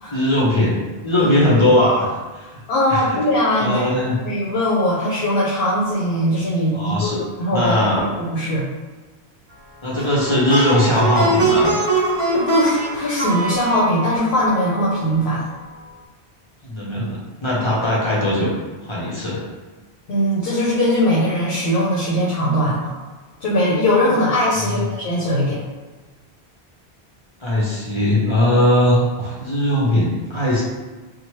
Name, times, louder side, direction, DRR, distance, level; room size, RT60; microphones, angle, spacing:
voice 1, 0.1-2.5 2.9-3.2 3.6-4.2 6.7-7.2 7.5-8.1 9.8-11.8 16.6-18.5 18.9-19.4 24.6-24.8 27.4-30.6, left 1 dB, 35° left, -6 dB, 0.6 m, -19 dB
voice 2, 2.7-3.9 4.2-7.7 8.2-8.6 12.3-15.4 20.1-23.0 23.4-25.6, equal, 70° left, -6 dB, 0.8 m, -20 dB
Plucked string instrument, 9.9-15.2, right 2 dB, 35° right, 0.4 m, -22 dB
2.9 x 2.1 x 3.0 m, 1.3 s
omnidirectional pair, 1.0 m